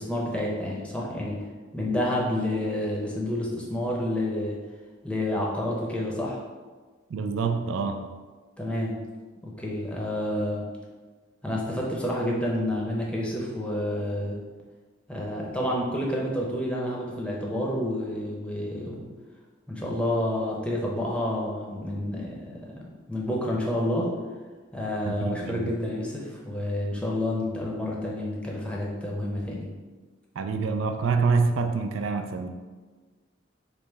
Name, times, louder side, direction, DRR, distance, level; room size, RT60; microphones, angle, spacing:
voice 1, 0.0-1.4 1.7-4.6 5.0-6.4 8.6-9.0 9.4-10.6 11.4-14.4 15.1-19.1 19.7-22.5 23.1-24.1 24.7-29.7, left 1 dB, 5° left, -3 dB, 0.7 m, -29 dB
voice 2, 7.1-8.1 25.1-25.7 30.4-32.5, right 4 dB, 70° right, 6 dB, 0.3 m, -26 dB
5.2 x 2.1 x 4.5 m, 1.4 s
head